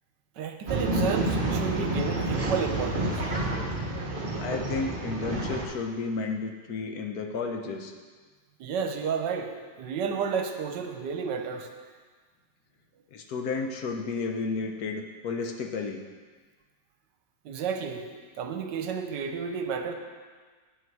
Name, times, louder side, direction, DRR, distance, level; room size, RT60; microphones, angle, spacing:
voice 1, 0.4-3.2 8.6-11.7 17.4-18.1 18.4-19.9, right 6 dB, 80° right, 5 dB, 1.4 m, -31 dB
Male speech man speaking / Chatter / Rattle, 0.7-5.6, right 1 dB, 35° right, 1.1 m, -29 dB
voice 2, 4.4-7.9 13.1-16.0, left 4 dB, 65° left, 3 dB, 1.2 m, -32 dB
8.9 x 7.8 x 4.7 m, 1.5 s
omnidirectional pair, 1.9 m